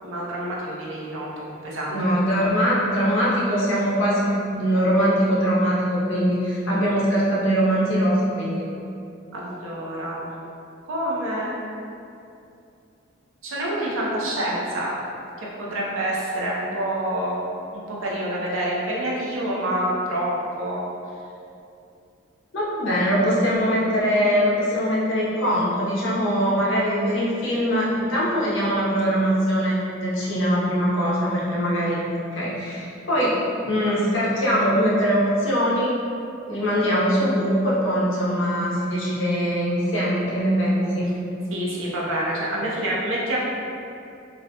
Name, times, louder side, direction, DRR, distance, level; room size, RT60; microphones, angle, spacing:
voice 1, 0.0-2.0 9.3-10.3 10.9-11.5 13.4-14.9 15.4-17.4 17.7-20.8 24.2-24.3 41.5-43.4, right 1 dB, 90° right, -5 dB, 0.6 m, -27 dB
voice 2, 1.9-8.6 22.5-29.7 30.0-32.0 32.3-33.4 33.6-36.0 36.5-41.1, equal, 75° left, -6 dB, 0.6 m, -22 dB
2.5 x 2.1 x 2.7 m, 2.6 s
head